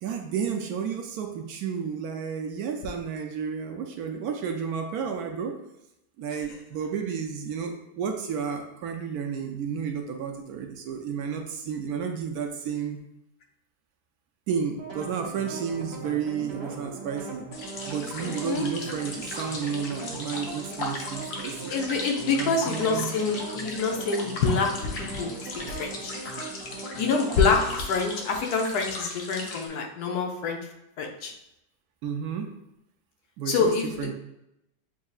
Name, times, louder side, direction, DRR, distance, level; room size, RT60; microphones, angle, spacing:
voice 1, 0.0-5.6 6.2-13.0 14.5-17.5 17.9-21.7 22.4-23.1 32.0-32.5 33.4-33.7 34.0-34.1, right 7 dB, 70° right, 4 dB, 1.0 m, -32 dB
sound 1, 14.7-27.8, right 3 dB, 45° right, 1.0 m, -40 dB
sound 2, 17.5-29.7, left 2 dB, 55° left, 0.8 m, -38 dB
voice 2, 18.2-18.7 21.7-25.3 25.7-26.3 27.0-30.6 31.0-31.3 33.5-34.1, left 4 dB, 75° left, 2 dB, 1.2 m, -26 dB
7.3 x 2.7 x 2.3 m, 0.86 s
omnidirectional pair, 1.8 m